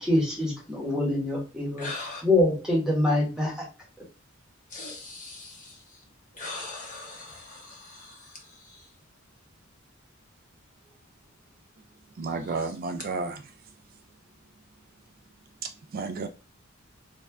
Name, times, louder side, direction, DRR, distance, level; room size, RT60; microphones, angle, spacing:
voice 1, 0.0-1.9 2.2-3.5, left 1 dB, 5° right, 1.2 m, -24 dB
voice 2, 1.8-2.2 4.7-5.7 6.3-8.2, left 3 dB, 40° left, 1.3 m, -39 dB
voice 3, 12.2-13.4 15.6-16.3, right 4 dB, 45° right, 0.3 m, -32 dB
3.2 x 2.4 x 3.4 m
head